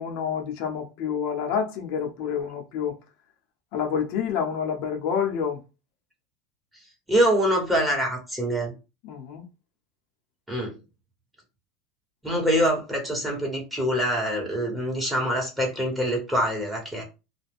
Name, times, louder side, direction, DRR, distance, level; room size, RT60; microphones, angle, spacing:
voice 1, 0.0-3.0 3.7-5.6 9.0-9.4, left 7 dB, 65° left, 0.7 m, -28 dB
voice 2, 7.1-8.7 10.5-10.8 12.2-17.0, equal, 5° right, 1.3 m, -25 dB
2.4 x 2.2 x 3.5 m
supercardioid pair, 120°, 0 cm